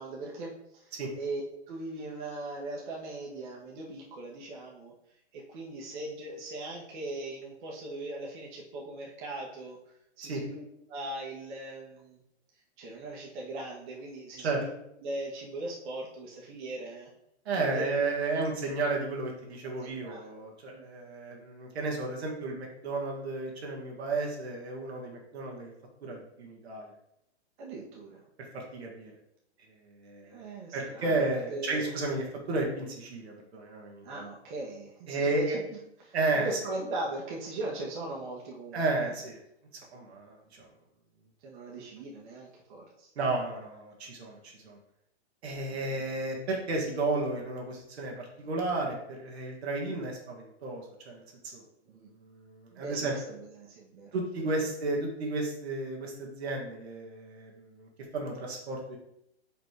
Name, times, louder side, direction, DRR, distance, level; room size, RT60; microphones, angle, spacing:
voice 1, 0.0-1.4 1.7-4.9 5.3-9.8 10.2-12.2 12.8-14.7 15.0-17.1 17.5-17.9 18.4-18.5 19.8-20.3 20.7-20.9 27.6-28.2 30.2-31.9 34.0-39.1 41.4-43.1 45.7-46.0 51.9-52.1 52.7-54.1 54.4-54.5, right 2 dB, 45° right, -3 dB, 1.7 m, -39 dB
voice 2, 17.5-25.7 26.0-26.9 28.5-29.1 30.0-30.4 30.7-34.3 35.1-35.6 36.1-36.5 38.7-39.4 39.9-40.4 43.2-44.8 45.4-51.2 51.5-51.6 52.2-53.1 54.1-59.0, right 3 dB, 65° right, -1 dB, 2.0 m, -33 dB
5.2 x 4.3 x 4.8 m, 0.79 s
hypercardioid pair, 145°, 34 cm